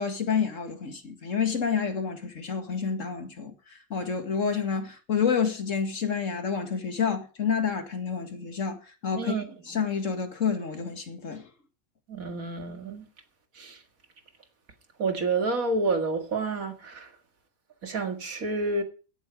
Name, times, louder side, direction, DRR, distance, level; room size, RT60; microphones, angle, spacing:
voice 1, 0.0-9.3 9.7-11.5, left 6 dB, 65° left, 2.2 m, -29 dB
voice 2, 12.1-13.1 13.6-13.8 15.0-17.1 17.8-18.8, right 3 dB, 80° right, 2.4 m, -29 dB
16.0 x 8.0 x 5.1 m
omnidirectional pair, 1.4 m